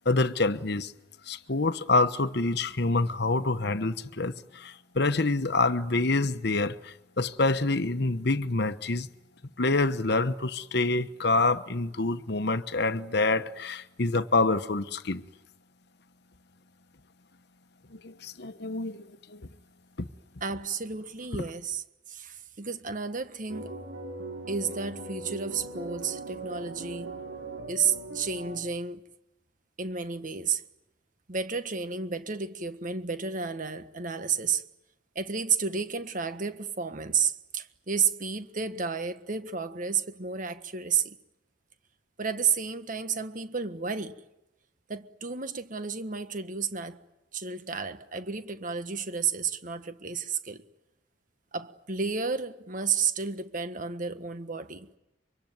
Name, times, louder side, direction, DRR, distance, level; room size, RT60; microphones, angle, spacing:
voice 1, 0.0-0.9 1.3-9.1 9.6-15.2 18.0-19.4 20.0-20.1, left 3 dB, 60° left, 1.1 m, -27 dB
voice 2, 20.4-23.8 24.5-27.1 27.7-29.0 29.8-30.6 31.3-34.6 35.1-41.2 42.2-44.2 44.9-47.0 47.3-50.6 51.5-54.9, right 6 dB, 45° right, 1.5 m, -31 dB
sound 1, 23.5-28.6, right 2 dB, 90° right, 6.1 m, -39 dB
25.0 x 25.0 x 9.4 m
head